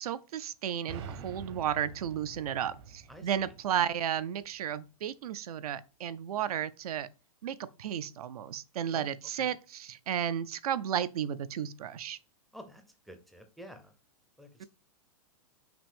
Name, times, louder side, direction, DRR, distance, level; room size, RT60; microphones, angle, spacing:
voice 1, 0.0-7.1 7.4-12.2 14.6-14.7, right 9 dB, 90° right, 0.5 m, -33 dB
sound 1, 0.9-4.5, right 6 dB, 50° right, 0.8 m, -47 dB
voice 2, 3.1-3.5 8.9-9.1 9.4-9.5 12.5-12.8 13.1-13.9 14.4-14.5, equal, ahead, 0.4 m, -49 dB
5.9 x 2.6 x 3.4 m
supercardioid pair, 165°, 19 cm